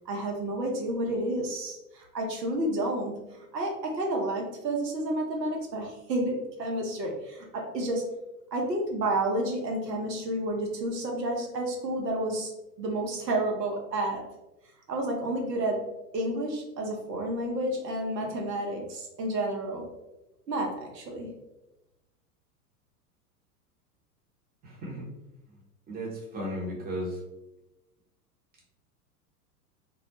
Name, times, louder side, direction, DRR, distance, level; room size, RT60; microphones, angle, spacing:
voice 1, 0.1-3.1 3.5-8.1 8.5-12.5 12.8-14.2 14.9-15.8 16.1-19.9 20.5-21.3, right 1 dB, 85° right, 0 dB, 0.7 m, -30 dB
voice 2, 24.6-25.0 25.9-27.2, equal, 20° right, -4 dB, 0.8 m, -35 dB
2.3 x 2.0 x 2.8 m, 0.95 s
hypercardioid pair, 95°, 48 cm